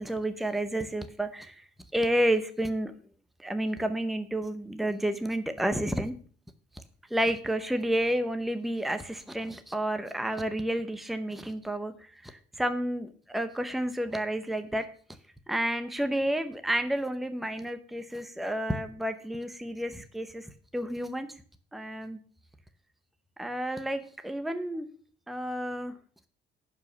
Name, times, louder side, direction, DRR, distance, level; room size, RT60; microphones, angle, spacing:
voice 1, 0.0-1.6 1.9-2.9 3.4-6.1 7.1-14.8 15.5-21.3 21.7-22.2 23.4-24.9 25.3-25.9, right 1 dB, ahead, 9 dB, 0.7 m, -30 dB
11.0 x 5.0 x 6.7 m, 0.43 s
cardioid pair, 165°, 19 cm